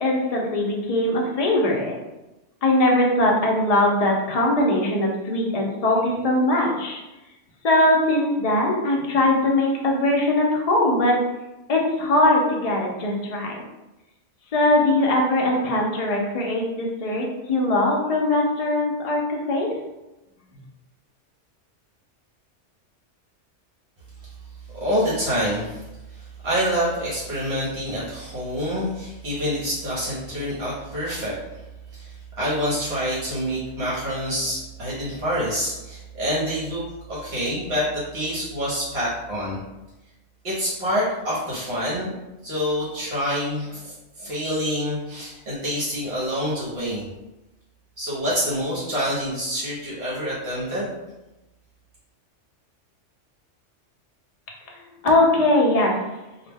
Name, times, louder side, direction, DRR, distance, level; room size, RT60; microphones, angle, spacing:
voice 1, 0.0-2.0 2.6-7.0 7.6-11.2 11.7-13.6 14.5-19.7 54.7-56.0, left 1 dB, 60° left, -1 dB, 0.4 m, -21 dB
voice 2, 24.7-25.8 26.1-31.4 31.9-36.8 37.1-39.6 40.4-42.1 42.4-47.1 48.0-50.9, equal, 60° right, -7 dB, 0.9 m, -27 dB
2.3 x 2.1 x 3.3 m, 1.0 s
omnidirectional pair, 1.2 m